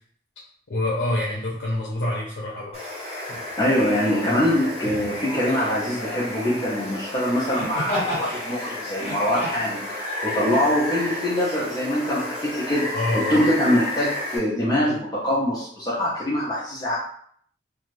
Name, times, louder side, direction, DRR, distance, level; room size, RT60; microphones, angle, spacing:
voice 1, 0.7-2.8 12.9-13.4, left 1 dB, 75° left, -4 dB, 0.6 m, -26 dB
Water, 2.7-14.4, left 1 dB, 35° right, 1.1 m, -32 dB
Laughter, 3.3-3.5 4.8-5.2 7.5-8.3 8.9-9.7 10.5-10.6, equal, 40° left, 1.2 m, -30 dB
voice 2, 3.6-9.9 10.2-12.9 13.1-17.0, left 1 dB, 25° left, -8 dB, 0.5 m, -23 dB
2.5 x 2.3 x 3.1 m, 0.63 s
head